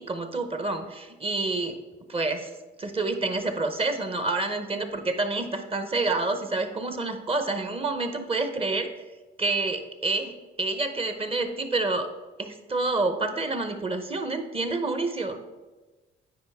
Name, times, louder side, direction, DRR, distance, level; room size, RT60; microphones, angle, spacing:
voice 1, 0.0-1.8 2.1-2.5 2.8-8.9 9.4-12.1 12.4-15.4, right 3 dB, 30° right, 7 dB, 0.9 m, -28 dB
8.8 x 4.8 x 3.6 m, 1.2 s
cardioid pair, 90°, 20 cm